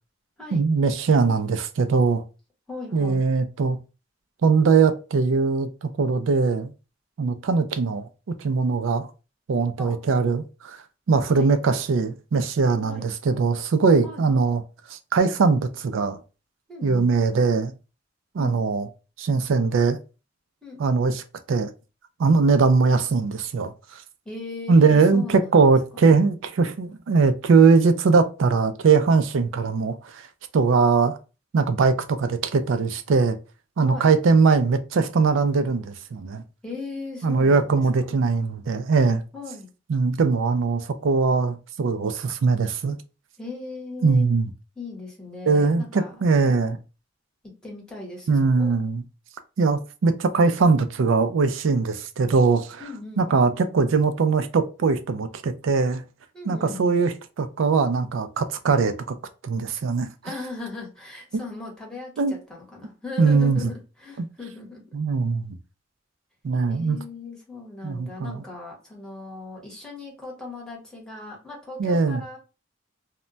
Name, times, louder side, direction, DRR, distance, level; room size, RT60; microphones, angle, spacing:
voice 1, 0.5-2.2 2.9-3.8 4.4-6.7 7.2-9.1 9.5-10.8 11.1-14.6 14.9-16.2 16.8-17.7 18.3-18.9 19.2-20.0 20.8-21.2 21.5-21.7 22.2-24.0 24.7-30.3 30.5-31.2 31.5-33.4 33.8-36.4 37.2-39.2 39.9-43.0 44.0-44.5 45.5-46.8 48.3-49.0 49.6-52.8 53.2-56.0 56.5-57.1 57.4-59.2 59.4-60.1 62.2-62.4 63.2-63.6 64.2-64.3 64.9-65.6 66.4-67.0 67.8-68.4 71.8-72.2, right 4 dB, 75° right, 0.4 m, -21 dB
voice 2, 2.7-3.3 9.8-10.0 11.3-11.5 12.9-13.0 14.0-14.2 16.7-17.1 18.4-18.6 20.6-20.8 24.2-25.7 33.8-34.1 36.6-38.1 39.3-39.7 43.4-44.3 44.8-46.7 47.6-48.8 52.8-53.3 56.3-57.0 60.2-64.8 66.7-72.4, left 3 dB, 5° left, 1.0 m, -38 dB
2.2 x 2.1 x 3.8 m
head